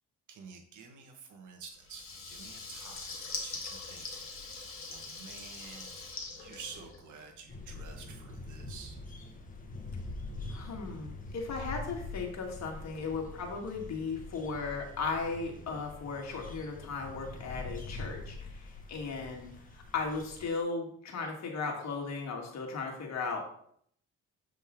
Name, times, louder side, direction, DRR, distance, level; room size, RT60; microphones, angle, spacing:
voice 1, 0.3-9.0, right 5 dB, 75° right, 3 dB, 1.6 m, -50 dB
Water tap faucet / Liquid, 1.8-7.3, left 3 dB, 45° left, 2.0 m, -43 dB
sound 1, 7.5-20.5, left 2 dB, 25° left, 1.6 m, -44 dB
voice 2, 10.5-23.4, left 4 dB, 60° left, 0 dB, 2.3 m, -36 dB
7.5 x 5.3 x 3.8 m, 0.65 s
cardioid pair, 90°, 30 cm